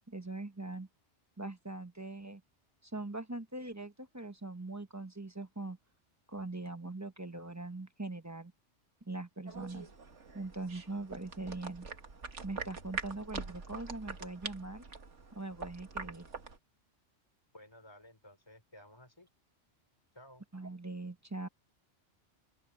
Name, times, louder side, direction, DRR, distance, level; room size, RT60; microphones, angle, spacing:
voice 1, 0.1-0.9 1.4-2.4 2.8-5.8 6.3-8.5 9.1-9.9 10.3-11.9 12.4-14.8 15.4-16.3 20.5-21.5, right 2 dB, 15° right, 0.9 m, -41 dB
sound 1, 9.5-16.6, right 4 dB, 85° right, 2.2 m, -44 dB
voice 2, 17.5-19.3 20.1-20.4, left 1 dB, 20° left, 3.9 m, -55 dB
open air
omnidirectional pair, 1.2 m